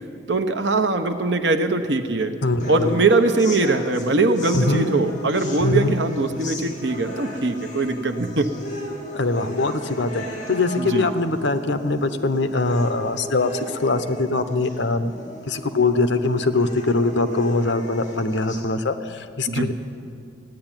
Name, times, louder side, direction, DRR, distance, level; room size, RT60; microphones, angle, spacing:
voice 1, 0.3-2.3 2.7-8.5 10.8-11.0 19.5-19.7, right 3 dB, 70° right, 7 dB, 1.0 m, -21 dB
voice 2, 2.4-2.9 4.5-4.8 5.6-5.9 9.1-15.1 15.5-19.7, left 2 dB, 65° left, 10 dB, 0.9 m, -22 dB
sound 1, 2.6-18.6, equal, 40° left, 2.6 m, -36 dB
15.5 x 10.5 x 9.0 m, 2.4 s
head